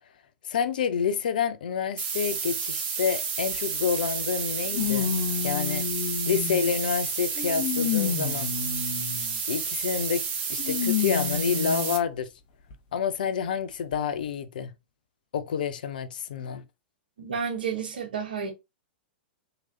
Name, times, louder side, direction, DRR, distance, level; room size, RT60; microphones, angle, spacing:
voice 1, 0.5-5.1 5.4-5.9 6.3-8.5 9.5-10.2 10.5-12.3 12.9-14.7 15.3-16.6, left 7 dB, 60° left, 0.5 m, -28 dB
sound 1, 2.0-12.0, right 6 dB, 30° right, 1.0 m, -31 dB
sound 2, 3.5-3.6 4.7-6.8 7.4-9.4 10.6-12.0 12.7-12.8 13.9-14.0, left 8 dB, 45° left, 1.1 m, -30 dB
voice 2, 17.2-18.5, right 6 dB, 65° right, 1.2 m, -31 dB
3.8 x 3.0 x 2.8 m
figure-of-eight pair, 100°, 5 cm